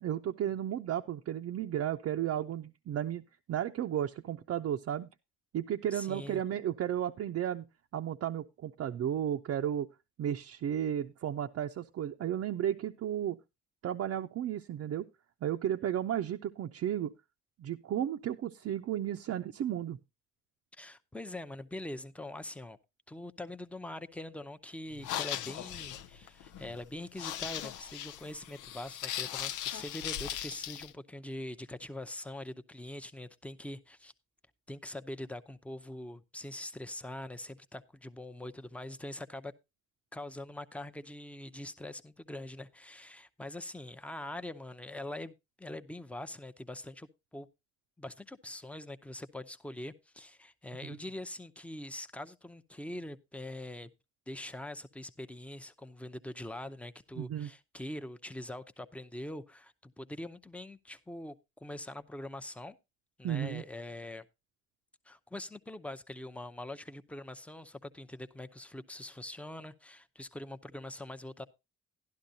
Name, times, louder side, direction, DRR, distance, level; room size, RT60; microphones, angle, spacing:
voice 1, 0.0-5.1 5.5-7.7 7.9-9.9 10.2-13.4 13.8-15.1 15.4-17.1 17.6-20.0 50.8-51.0 57.2-57.5 63.2-63.6, right 10 dB, 55° right, 0.5 m, -33 dB
voice 2, 5.9-6.4 20.8-22.8 23.1-34.1 34.7-39.5 40.1-47.5 48.0-53.9 54.3-62.8 63.2-64.3 65.1-71.5, left 1 dB, 5° left, 0.6 m, -43 dB
sound 1, 24.9-30.9, left 11 dB, 85° left, 0.6 m, -39 dB
11.5 x 11.5 x 2.7 m
cardioid pair, 90°, 30 cm